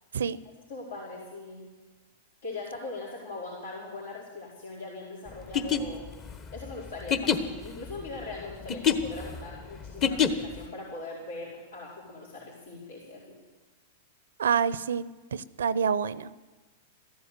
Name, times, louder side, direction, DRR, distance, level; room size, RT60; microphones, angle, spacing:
voice 1, 0.7-1.7 2.4-6.1 6.5-13.4, left 3 dB, 80° left, -6 dB, 4.4 m, -40 dB
sound 1, 5.4-10.7, left 8 dB, 35° left, 1.2 m, -27 dB
voice 2, 14.4-16.3, right 7 dB, 85° right, 18 dB, 0.6 m, -27 dB
14.5 x 11.0 x 8.2 m, 1.2 s
hypercardioid pair, 115°, 0 cm